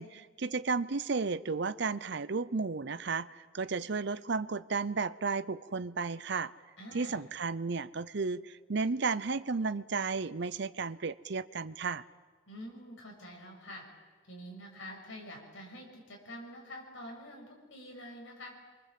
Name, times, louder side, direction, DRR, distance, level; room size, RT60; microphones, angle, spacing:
voice 1, 0.0-6.5 6.9-12.0, right 4 dB, 60° right, 15 dB, 0.7 m, -33 dB
voice 2, 6.8-7.2 12.5-13.8 14.2-18.5, equal, 70° left, 1 dB, 6.6 m, -47 dB
27.0 x 24.0 x 7.6 m, 1.5 s
head